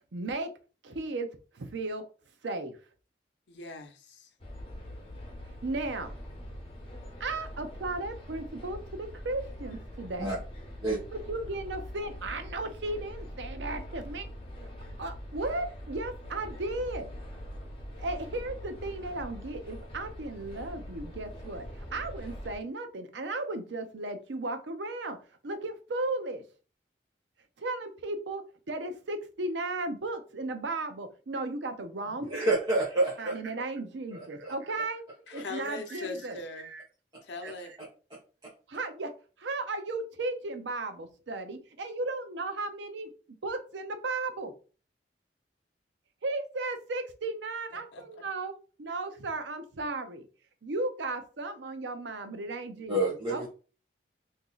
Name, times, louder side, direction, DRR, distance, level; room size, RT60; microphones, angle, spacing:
voice 1, 0.1-0.5 0.8-1.3 1.5-2.0 2.4-2.8 5.6-6.2 7.2-10.3 11.3-14.2 15.0-17.1 18.0-25.2 25.4-26.4 27.6-32.3 33.2-35.0 35.3-36.8 37.4-37.8 38.7-39.1 39.4-43.1 43.4-44.5 46.2-48.5 48.8-50.3 50.6-53.0 53.3-53.5, right 2 dB, 80° right, 8 dB, 0.6 m, -35 dB
voice 2, 3.5-4.3 35.3-36.7 37.2-37.7 47.9-48.0, left 3 dB, 80° left, 5 dB, 0.7 m, -40 dB
sound 1, 4.4-22.6, equal, 30° left, 1.0 m, -43 dB
voice 3, 32.1-33.4 34.1-34.5 35.3-35.4 37.1-37.2 38.4-38.5 52.9-53.5, right 2 dB, 25° right, -6 dB, 1.0 m, -29 dB
2.9 x 2.7 x 3.8 m, 0.36 s
head